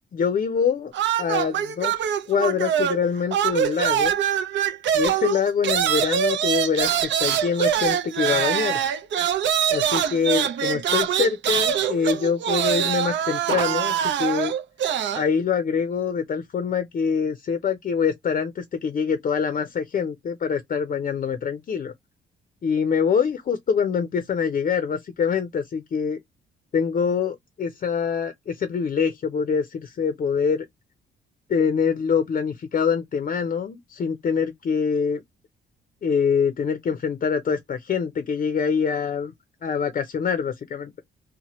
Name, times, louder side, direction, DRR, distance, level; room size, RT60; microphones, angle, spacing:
voice 1, 0.1-0.9 1.2-2.0 2.3-4.1 4.9-6.9 7.2-8.9 9.7-14.5 15.1-21.9 22.6-26.2 26.7-30.7 31.5-35.2 36.0-39.3 39.6-41.0, left 6 dB, 45° left, 0.5 m, -24 dB
sound 1, 0.9-3.1 3.3-15.3, right 9 dB, 65° right, 0.6 m, -24 dB
2.8 x 2.1 x 2.9 m
cardioid pair, 90°, 20 cm